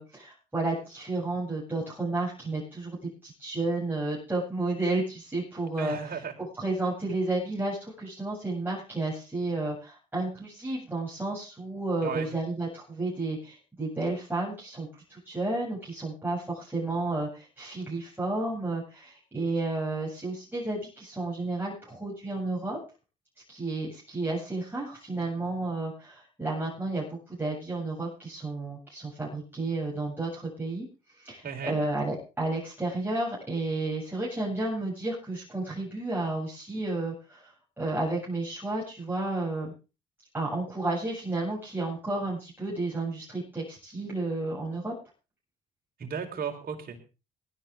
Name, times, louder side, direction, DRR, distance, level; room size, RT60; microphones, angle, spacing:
voice 1, 0.0-3.0 3.2-6.2 6.6-22.8 23.5-30.9 31.1-37.5 37.8-39.7 40.3-44.9, right 2 dB, 10° right, -6 dB, 7.8 m, -32 dB
voice 2, 5.8-6.3 12.0-12.3 31.4-31.8 46.0-47.0, right 6 dB, 55° right, 3 dB, 4.0 m, -35 dB
19.5 x 12.0 x 3.6 m, 0.31 s
supercardioid pair, 70°, 18 cm